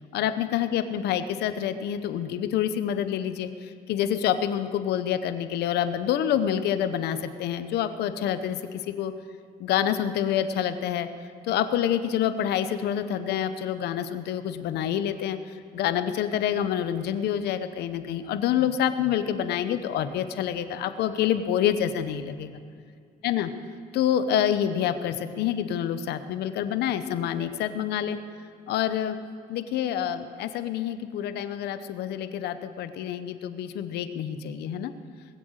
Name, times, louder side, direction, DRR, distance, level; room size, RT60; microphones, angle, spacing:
voice 1, 0.1-9.1 9.6-11.1 11.4-22.6 23.2-23.5 23.9-28.2 28.7-29.1 29.5-34.9, left 10 dB, 75° left, 11 dB, 0.9 m, -27 dB
21.0 x 7.8 x 6.6 m, 2.3 s
cardioid pair, 110°, 17 cm